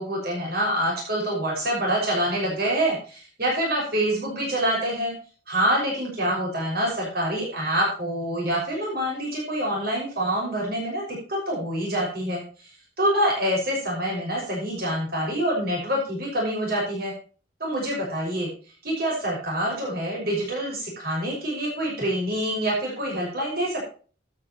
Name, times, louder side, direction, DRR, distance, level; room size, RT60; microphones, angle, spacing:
voice 1, 0.0-5.1 5.5-17.1 17.6-18.5 18.8-23.8, right 1 dB, 55° right, -2 dB, 5.9 m, -26 dB
14.5 x 11.0 x 3.0 m, 0.38 s
head